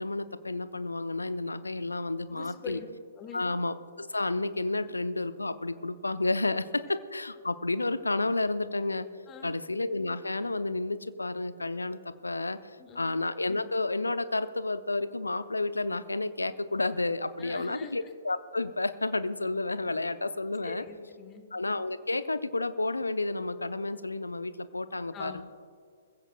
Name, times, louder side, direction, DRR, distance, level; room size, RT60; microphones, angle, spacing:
voice 1, 0.0-2.8 3.3-9.1 9.4-12.6 12.9-20.8 21.5-25.4, left 2 dB, 75° left, 13 dB, 0.6 m, -31 dB
voice 2, 2.3-2.9 3.2-3.6 9.3-9.6 12.8-13.1 17.4-17.9 20.6-21.4 25.1-25.4, left 7 dB, 20° left, 7 dB, 1.3 m, -44 dB
21.5 x 15.5 x 2.3 m, 2.1 s
figure-of-eight pair, 120°, 0 cm